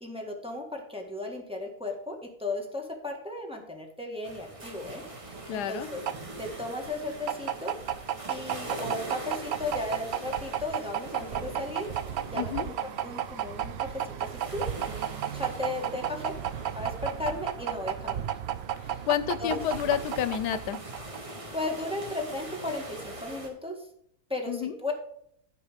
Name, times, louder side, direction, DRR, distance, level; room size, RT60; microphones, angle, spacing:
voice 1, 0.0-6.0 6.4-7.7 8.3-11.9 12.3-12.7 13.0-16.3 16.7-18.3 18.9-19.0 19.4-19.5 21.2-23.9 24.3-24.9, left 2 dB, 5° right, 0 dB, 1.6 m, -36 dB
sound 1, 4.2-23.5, right 1 dB, 20° right, 1.2 m, -43 dB
sound 2, 5.3-21.3, right 10 dB, 75° right, 0.6 m, -34 dB
voice 2, 5.5-5.9 12.3-12.7 19.1-20.8 24.5-24.7, left 10 dB, 85° left, 14 dB, 1.2 m, -29 dB
12.0 x 4.9 x 5.0 m, 0.70 s
omnidirectional pair, 1.7 m